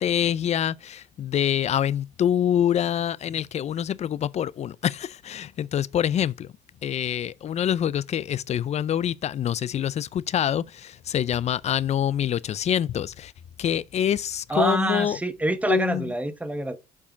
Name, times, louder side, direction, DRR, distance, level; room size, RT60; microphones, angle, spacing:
voice 1, 0.0-6.5 6.8-13.3 13.6-15.2 15.7-16.1, left 10 dB, 40° left, 0.4 m, -26 dB
voice 2, 14.5-16.8, right 1 dB, 10° right, 1.0 m, -26 dB
7.2 x 4.7 x 5.1 m
cardioid pair, 110°, 17 cm